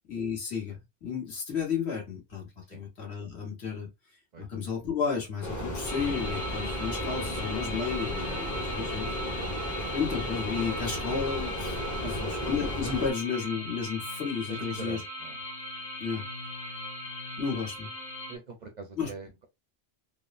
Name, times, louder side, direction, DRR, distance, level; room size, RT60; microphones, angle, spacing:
voice 1, 0.1-3.9 4.4-9.2 9.9-15.0 16.0-16.2 17.4-17.9 19.0-19.1, left 6 dB, 75° left, 1.5 m, -33 dB
sound 1, 5.4-13.1, equal, 20° left, 0.6 m, -34 dB
sound 2, 5.9-18.4, equal, 45° left, 1.0 m, -38 dB
voice 2, 11.9-12.5 14.5-15.4 18.3-19.4, right 4 dB, 50° right, 0.6 m, -43 dB
3.5 x 2.1 x 2.5 m
omnidirectional pair, 1.1 m